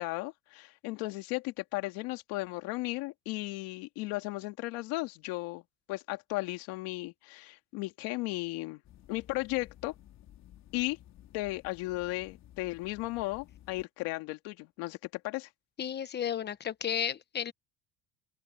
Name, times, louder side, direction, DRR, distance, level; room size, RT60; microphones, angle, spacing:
voice 1, 0.0-5.6 5.9-8.8 9.1-9.9 10.7-11.0 11.3-15.5, left 21 dB, 80° left, 2.7 m, -35 dB
sound 1, 8.8-13.8, left 12 dB, 50° left, 3.6 m, -55 dB
voice 2, 15.8-17.5, left 9 dB, 30° left, 1.2 m, -33 dB
open air
cardioid pair, 140°, 35 cm